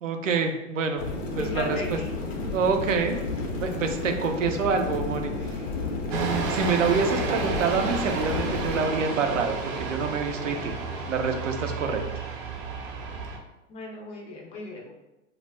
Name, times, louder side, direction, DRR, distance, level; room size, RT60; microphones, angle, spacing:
voice 1, 0.0-1.0 1.4-2.0 2.5-3.2 3.6-5.6 6.1-10.8 11.1-12.0, right 5 dB, 90° right, 5 dB, 0.5 m, -27 dB
sound 1, 1.0-8.9, left 3 dB, 85° left, 0.7 m, -32 dB
voice 2, 1.3-2.1 13.7-14.9, left 2 dB, 20° left, -1 dB, 0.3 m, -36 dB
sound 2, 6.1-13.4, right 4 dB, 40° right, 0.6 m, -31 dB
2.3 x 2.1 x 3.3 m, 0.97 s
hypercardioid pair, 110°, 37 cm